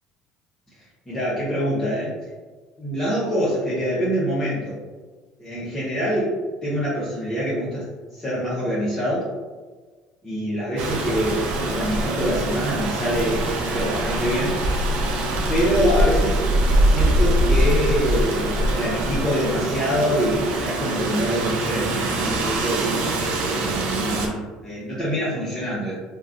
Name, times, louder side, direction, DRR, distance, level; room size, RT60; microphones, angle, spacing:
voice 1, 1.1-2.2 2.8-4.8 5.4-6.3 6.6-7.9 8.1-9.3 10.2-14.6 15.5-16.4 16.8-22.9 23.5-25.9, equal, 15° left, -9 dB, 0.9 m, -25 dB
Rain, 10.8-24.3, right 1 dB, 70° right, 0.5 m, -23 dB
3.1 x 2.3 x 2.5 m, 1.4 s
supercardioid pair, 95°, 2 cm